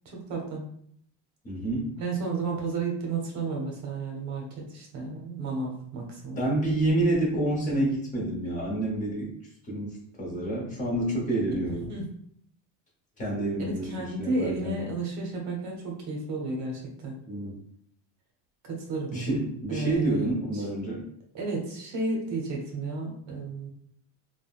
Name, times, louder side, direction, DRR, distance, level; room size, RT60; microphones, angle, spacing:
voice 1, 0.0-0.6 2.0-6.4 11.7-12.2 13.6-17.2 18.6-19.4 19.7-20.6 21.3-23.7, right 3 dB, 45° right, 0 dB, 0.8 m, -33 dB
voice 2, 1.4-1.9 6.4-9.3 9.7-11.8 13.2-14.8 17.3-17.6 19.1-21.0, right 1 dB, 20° left, -3 dB, 0.8 m, -28 dB
3.4 x 2.2 x 2.4 m, 0.66 s
cardioid pair, 165°, 39 cm